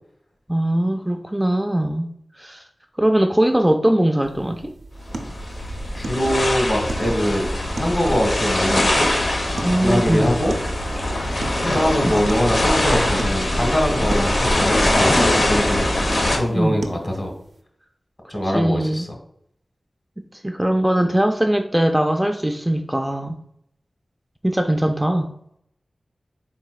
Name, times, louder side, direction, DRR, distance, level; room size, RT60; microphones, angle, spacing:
voice 1, 0.5-2.6 3.0-4.7 9.6-10.4 12.0-12.2 16.5-16.8 18.4-19.0 20.4-23.4 24.4-25.3, right 1 dB, 10° right, 5 dB, 0.3 m, -21 dB
sound 1, 4.2-17.6, right 2 dB, 80° right, 0.6 m, -38 dB
sound 2, 5.0-16.4, left 1 dB, 65° left, 0.8 m, -22 dB
voice 2, 5.9-7.5 7.8-9.1 9.8-10.5 11.6-16.1 16.3-17.3 18.3-19.1, equal, 35° left, 2 dB, 1.4 m, -22 dB
4.1 x 3.9 x 2.2 m, 0.71 s
cardioid pair, 40°, 0 cm